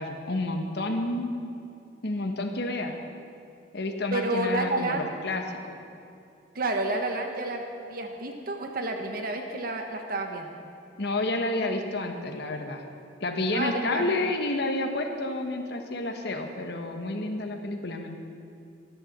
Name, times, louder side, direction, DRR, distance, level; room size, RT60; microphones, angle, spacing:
voice 1, 0.0-1.3 2.0-3.0 3.7-5.8 11.0-12.8 13.2-18.2, left 2 dB, 65° left, 4 dB, 1.4 m, -30 dB
voice 2, 4.1-5.1 6.5-7.6 7.9-10.6 13.5-14.1, right 2 dB, 55° right, 4 dB, 1.1 m, -30 dB
14.5 x 10.5 x 7.4 m, 2.5 s
head